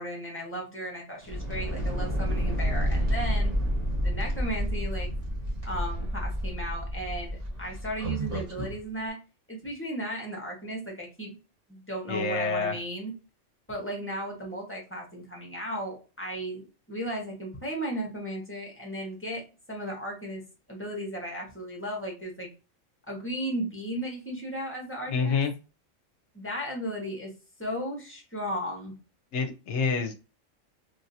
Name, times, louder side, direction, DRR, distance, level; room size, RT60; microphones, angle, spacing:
voice 1, 0.0-3.5 4.0-5.1 5.6-9.2 9.5-11.3 11.7-13.1 13.7-22.5 23.1-25.4 26.3-27.3 27.6-28.9, equal, 10° left, -1 dB, 1.0 m, -35 dB
sound 1, 1.2-8.8, equal, 30° right, 1.3 m, -29 dB
voice 2, 12.1-12.8 25.1-25.5 29.3-30.1, left 5 dB, 65° left, 6 dB, 0.9 m, -27 dB
3.1 x 2.7 x 2.6 m, 0.31 s
omnidirectional pair, 1.3 m